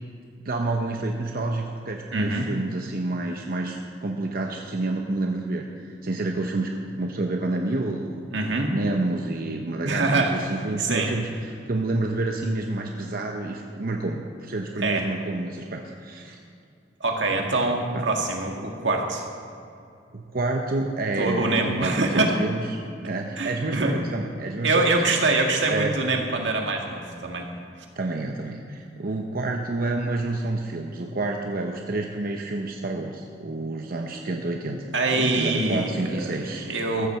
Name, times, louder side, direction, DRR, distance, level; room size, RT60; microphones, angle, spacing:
voice 1, 0.4-8.2 8.6-16.4 17.9-18.0 20.1-22.6 23.0-25.2 25.7-25.9 28.0-34.8 35.1-36.7, right 2 dB, 55° right, 2 dB, 0.8 m, -29 dB
voice 2, 2.1-2.5 8.3-8.7 9.8-10.4 10.8-11.1 14.8-15.0 17.0-19.2 21.2-22.3 23.4-24.0 24.6-27.5 34.9-37.1, right 2 dB, 85° right, 2 dB, 1.8 m, -24 dB
14.5 x 7.5 x 6.8 m, 2.5 s
head